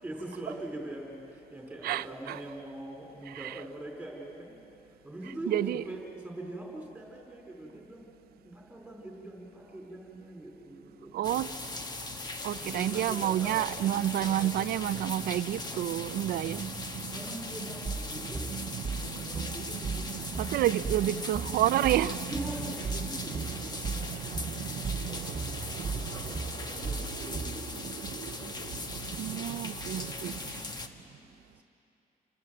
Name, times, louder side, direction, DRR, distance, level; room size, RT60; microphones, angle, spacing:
voice 1, 0.0-4.5 5.0-8.1 8.4-11.4 12.6-13.7 14.2-14.7 17.1-18.6 18.9-20.6 22.2-24.8 25.1-27.9 28.3-28.9 29.9-31.6, right 1 dB, 5° right, 4.7 m, -43 dB
voice 2, 1.8-2.4 3.3-3.6 5.5-5.8 11.1-11.5 12.4-17.2 17.8-17.9 18.4-22.3 23.0-30.6, right 13 dB, 85° right, 0.6 m, -32 dB
sound 1, 11.2-30.9, left 2 dB, 25° left, 1.3 m, -39 dB
sound 2, 17.9-27.6, right 4 dB, 25° right, 1.0 m, -36 dB
29.0 x 24.0 x 7.8 m
cardioid pair, 150°, 16 cm